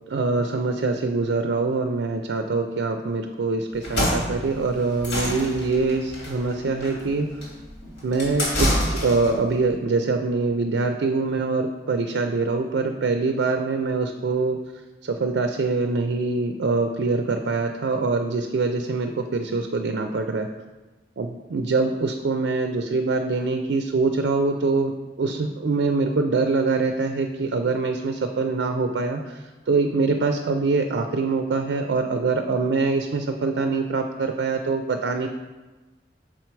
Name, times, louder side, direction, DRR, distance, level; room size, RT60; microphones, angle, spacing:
voice 1, 0.1-7.3 8.0-14.6 15.0-20.5 21.2-21.3 21.5-24.9 25.2-29.4 29.7-35.3, right 3 dB, 75° right, 6 dB, 0.4 m, -24 dB
sound 1, 3.7-9.4, equal, 85° left, 2.1 m, -27 dB
6.2 x 4.5 x 4.5 m, 1.2 s
head